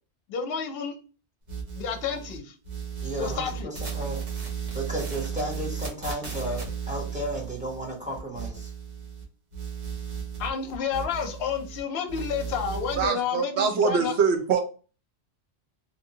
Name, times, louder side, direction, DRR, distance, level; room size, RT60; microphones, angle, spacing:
voice 1, 0.3-0.9 1.7-2.5 3.2-3.8 10.4-14.2, left 6 dB, 65° left, 0.8 m, -30 dB
sound 1, 1.5-2.4 2.6-9.2 9.5-11.8 12.1-13.1, right 7 dB, 45° right, 1.0 m, -35 dB
voice 2, 3.0-4.3 4.7-8.7, right 1 dB, 10° right, 0.7 m, -33 dB
voice 3, 13.0-14.6, right 6 dB, 75° right, 0.9 m, -23 dB
2.8 x 2.6 x 2.7 m
omnidirectional pair, 1.2 m